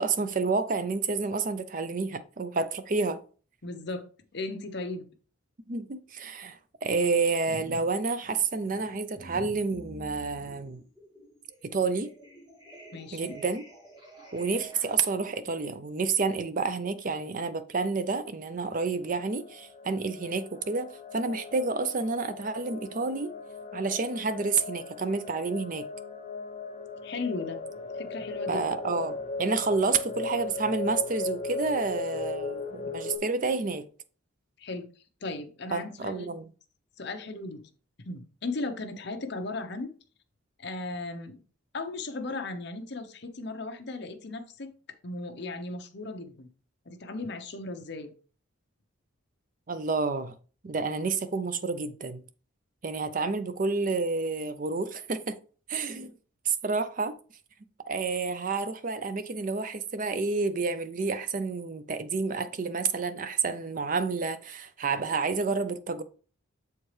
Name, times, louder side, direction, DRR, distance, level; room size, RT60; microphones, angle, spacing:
voice 1, 0.0-3.2 5.7-10.8 11.6-12.1 13.1-13.6 14.3-23.3 23.7-25.9 28.5-33.9 35.7-36.4 49.7-50.4 50.6-52.2 52.8-55.4 55.7-56.1 56.5-57.2 57.9-66.0, right 4 dB, 40° right, 0.5 m, -29 dB
voice 2, 3.6-4.1 4.3-5.1 12.9-13.4 27.0-27.6 27.9-28.7 34.6-34.9 35.2-36.3 37.0-37.7 38.1-39.9 40.6-41.3 41.7-44.7 45.0-46.5 46.9-48.1, left 3 dB, 55° left, 0.8 m, -36 dB
sound 1, 7.5-7.9 8.2-15.1, equal, 20° right, 1.7 m, -48 dB
sound 2, 18.7-33.2, left 3 dB, 30° left, 1.0 m, -38 dB
7.2 x 4.5 x 3.2 m
head